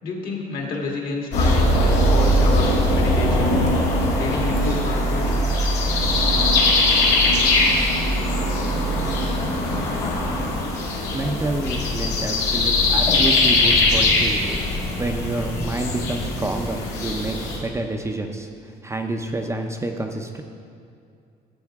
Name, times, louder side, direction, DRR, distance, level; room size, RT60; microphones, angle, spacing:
voice 1, 0.0-3.6 4.1-5.4, left 3 dB, 60° left, -1 dB, 2.0 m, -29 dB
sound 1, 1.3-17.6, left 1 dB, 85° left, 2.0 m, -20 dB
voice 2, 11.1-14.6 15.0-17.3 17.6-18.5 18.8-20.4, right 2 dB, 15° right, 3 dB, 0.6 m, -28 dB
12.0 x 7.7 x 3.6 m, 2.4 s
cardioid pair, 110°, 17 cm